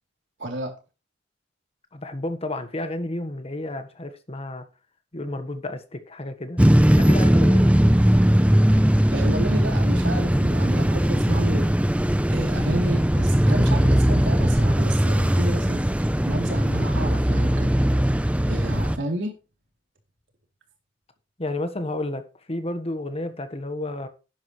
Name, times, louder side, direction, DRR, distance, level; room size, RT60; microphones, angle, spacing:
voice 1, 0.4-0.8 9.1-11.7 12.3-17.8 18.5-19.3, right 1 dB, 85° right, 3.5 m, -31 dB
voice 2, 1.9-4.6 5.1-6.6 7.0-7.7 21.4-22.2 22.5-24.1, left 1 dB, 35° left, 1.4 m, -31 dB
sound 1, 6.6-19.0, equal, 5° right, 0.6 m, -19 dB
11.5 x 9.8 x 3.3 m
head